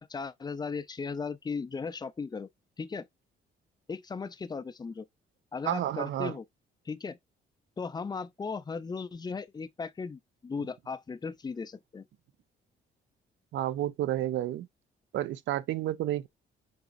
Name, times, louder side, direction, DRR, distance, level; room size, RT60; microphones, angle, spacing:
voice 1, 0.0-2.5 2.8-3.1 3.9-5.0 5.5-6.4 6.9-7.2 7.8-12.1, left 5 dB, 20° left, 0.5 m, -37 dB
voice 2, 5.6-6.3 13.5-14.7 15.1-16.3, right 13 dB, 70° right, 0.5 m, -30 dB
4.0 x 3.6 x 2.5 m
cardioid pair, 90°, 20 cm